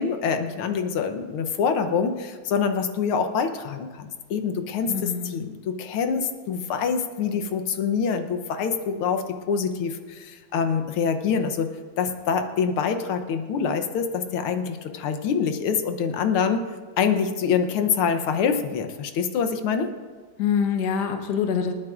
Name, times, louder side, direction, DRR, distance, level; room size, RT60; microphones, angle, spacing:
voice 1, 0.0-11.7 12.0-16.6 17.0-19.9, left 6 dB, 90° left, 7 dB, 1.7 m, -25 dB
voice 2, 4.9-5.4 20.4-21.7, left 7 dB, 60° left, 5 dB, 1.5 m, -25 dB
27.5 x 9.3 x 2.5 m, 1.5 s
omnidirectional pair, 2.3 m